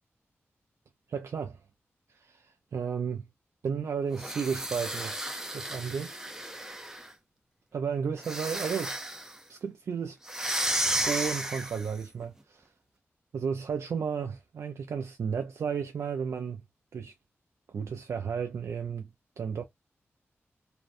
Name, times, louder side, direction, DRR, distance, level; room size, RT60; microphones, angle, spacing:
voice 1, 1.1-1.6 2.1-3.3 3.6-5.2 5.5-6.2 7.7-8.9 9.5-10.2 10.9-12.7 13.3-16.6 16.9-17.1 17.7-19.6, right 6 dB, 75° right, 0.3 m, -33 dB
sound 1, 4.1-7.1 8.2-9.4 10.3-12.0, right 1 dB, 10° right, 0.5 m, -33 dB
2.5 x 2.1 x 2.4 m
cardioid pair, 65°, 5 cm